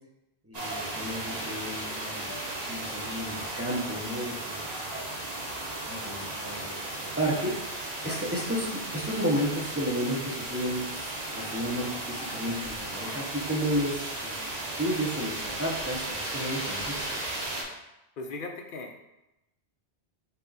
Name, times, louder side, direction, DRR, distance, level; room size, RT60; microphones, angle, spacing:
voice 1, 0.4-5.0 5.8-7.5 8.0-8.7 8.9-10.9 11.4-14.3 14.8-17.5, equal, 15° right, -4 dB, 0.7 m, -32 dB
sound 1, 0.5-17.6, right 1 dB, 40° right, 0.9 m, -35 dB
voice 2, 18.2-19.0, left 3 dB, 60° left, 3 dB, 0.7 m, -38 dB
5.5 x 2.4 x 3.9 m, 0.93 s
omnidirectional pair, 1.1 m